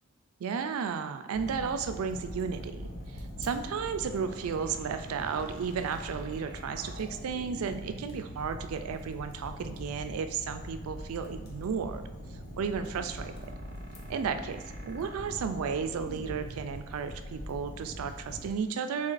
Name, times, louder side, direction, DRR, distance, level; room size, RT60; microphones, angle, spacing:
voice 1, 0.4-12.1 12.6-13.3 14.1-19.1, right 6 dB, 85° right, 9 dB, 0.4 m, -33 dB
Fire, 1.3-18.5, equal, 50° left, 0.6 m, -43 dB
sound 1, 2.3-18.6, right 1 dB, 45° right, 0.8 m, -48 dB
6.8 x 2.9 x 2.5 m, 1.1 s
head